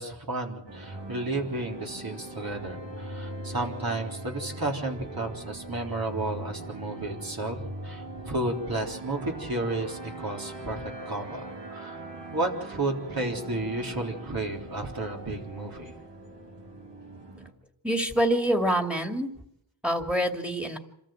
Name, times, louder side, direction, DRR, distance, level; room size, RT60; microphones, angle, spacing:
voice 1, 0.0-12.0 12.3-15.9, right 2 dB, 55° right, 1 dB, 3.9 m, -32 dB
sound 1, 0.7-17.5, right 2 dB, 80° right, 2.9 m, -41 dB
voice 2, 17.8-19.3 19.8-20.8, right 1 dB, 5° right, 5 dB, 2.5 m, -26 dB
27.0 x 14.0 x 7.9 m, 0.80 s
wide cardioid pair, 60°, 42 cm